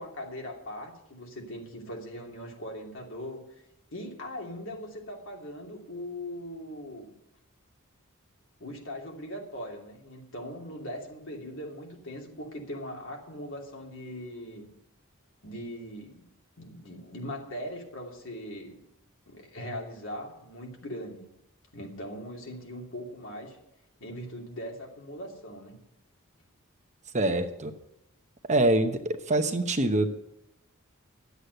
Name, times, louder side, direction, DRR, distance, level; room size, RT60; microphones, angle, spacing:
voice 1, 0.0-3.4 3.9-7.1 8.6-14.7 15.4-16.3 16.6-18.8 19.3-21.2 21.7-23.6 24.0-25.8, equal, 60° left, 0 dB, 2.8 m, -40 dB
voice 2, 27.1-27.7 28.4-30.1, right 2 dB, 35° right, 7 dB, 0.9 m, -25 dB
11.5 x 8.2 x 8.0 m, 0.83 s
head